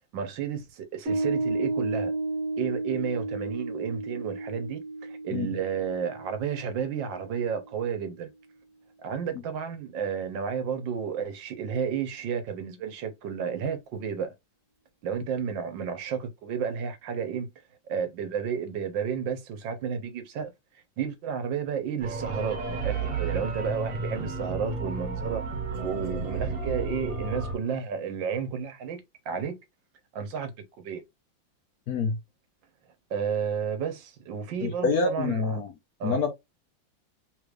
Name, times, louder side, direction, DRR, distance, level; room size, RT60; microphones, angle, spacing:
voice 1, 0.1-2.1 2.6-8.3 9.0-14.3 15.0-17.5 17.9-20.5 21.0-25.4 25.8-29.6 30.1-30.5 30.8-31.0 33.1-35.6 36.0-36.2, right 7 dB, 70° right, 1.5 m, -32 dB
Piano, 1.1-7.8, right 2 dB, 30° right, 1.6 m, -33 dB
sound 1, 22.0-27.5, right 3 dB, 45° right, 1.7 m, -32 dB
voice 2, 31.9-32.2 34.6-35.7 36.0-36.3, left 4 dB, 65° left, 1.0 m, -26 dB
3.8 x 3.2 x 2.4 m
omnidirectional pair, 2.1 m